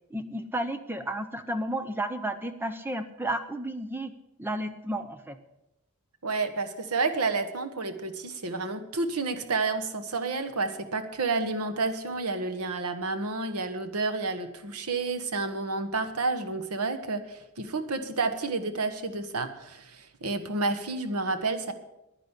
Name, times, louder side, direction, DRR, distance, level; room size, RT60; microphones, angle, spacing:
voice 1, 0.1-4.1 4.4-5.4, right 1 dB, 10° right, 10 dB, 0.6 m, -32 dB
voice 2, 6.2-21.7, right 3 dB, 85° right, 8 dB, 1.3 m, -30 dB
10.5 x 10.0 x 8.2 m, 0.92 s
head